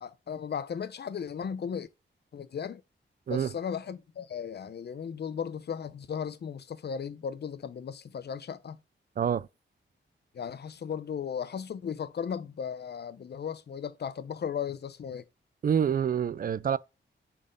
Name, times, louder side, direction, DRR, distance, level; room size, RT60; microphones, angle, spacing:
voice 1, 0.0-1.9 2.3-2.8 3.3-8.8 10.3-15.2, left 7 dB, 55° left, 0.6 m, -36 dB
voice 2, 9.2-9.5 15.6-16.8, right 8 dB, 45° right, 0.4 m, -27 dB
7.0 x 4.3 x 5.1 m
wide cardioid pair, 125°, 20 cm